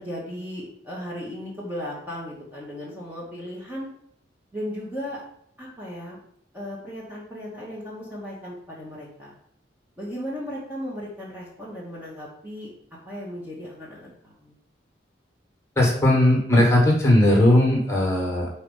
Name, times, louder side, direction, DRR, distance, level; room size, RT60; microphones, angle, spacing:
voice 1, 0.0-3.9 4.5-5.2 5.6-6.2 6.5-9.3 10.0-12.7 13.0-14.5, equal, 10° right, -6 dB, 1.1 m, -36 dB
voice 2, 15.8-18.5, left 1 dB, 15° left, -2 dB, 1.5 m, -18 dB
4.8 x 4.2 x 5.4 m, 0.69 s
head